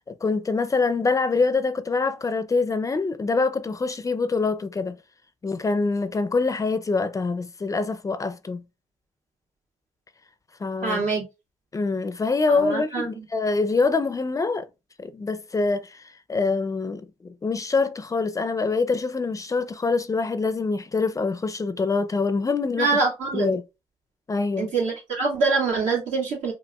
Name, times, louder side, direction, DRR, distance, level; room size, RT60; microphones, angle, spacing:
voice 1, 0.1-5.0 5.4-8.6 10.6-11.1 11.7-14.7 15.0-16.0 16.3-23.0 23.3-23.6 24.3-24.7, left 4 dB, 25° left, 0.4 m, -25 dB
voice 2, 10.8-11.2 12.6-13.2 22.8-23.5 24.6-26.5, right 4 dB, 70° right, 2.0 m, -24 dB
5.0 x 2.5 x 2.3 m
cardioid pair, 75°, 13 cm